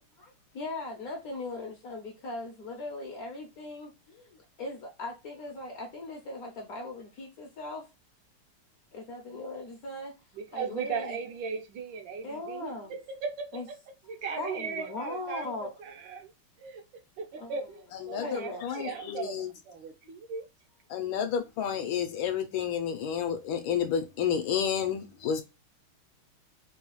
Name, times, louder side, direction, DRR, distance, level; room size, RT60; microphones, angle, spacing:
voice 1, 0.2-7.8 8.9-10.1 10.5-11.2 12.2-13.0 13.5-13.6 14.4-15.7 17.3-17.5 18.1-18.6 20.0-20.1, left 2 dB, 60° left, 0.9 m, -39 dB
voice 2, 10.3-13.8 14.1-16.3 16.6-20.5, right 5 dB, 75° right, 1.2 m, -38 dB
voice 3, 18.1-19.5 20.9-25.4, left 8 dB, 75° left, 1.3 m, -30 dB
4.8 x 2.3 x 3.0 m
omnidirectional pair, 2.3 m